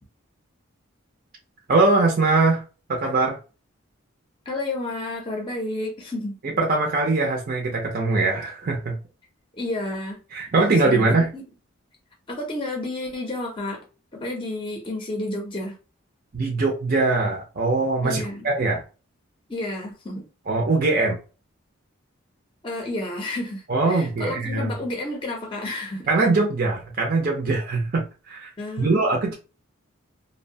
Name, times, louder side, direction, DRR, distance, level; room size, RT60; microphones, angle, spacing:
voice 1, 1.7-2.6 2.9-3.4 6.6-9.0 10.3-11.3 16.3-18.8 20.5-21.2 23.7-24.7 26.1-28.5 28.8-29.3, right 3 dB, 45° right, 0.5 m, -22 dB
voice 2, 4.5-6.4 9.5-10.5 10.8-11.4 12.3-13.8 14.2-15.7 18.0-18.5 19.5-20.3 22.6-26.1 28.6-29.1, left 2 dB, 25° left, 0.5 m, -31 dB
2.6 x 2.1 x 2.7 m
head